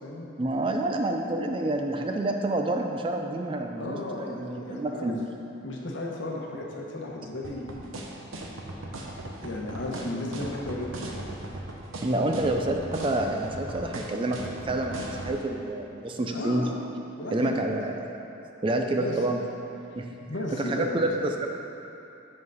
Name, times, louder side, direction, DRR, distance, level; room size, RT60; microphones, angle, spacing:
voice 1, 0.4-5.2 12.0-16.7 17.3-18.1 18.6-19.4 19.9-21.5, right 2 dB, 25° right, 3 dB, 0.4 m, -28 dB
voice 2, 3.8-5.1 5.6-8.0 9.4-11.2 16.3-16.7 17.2-17.6 19.0-19.2 20.3-20.9, left 1 dB, 65° left, -2 dB, 1.0 m, -34 dB
sound 1, 7.4-15.3, right 2 dB, 90° right, 0.9 m, -37 dB
7.8 x 3.9 x 5.4 m, 2.8 s
head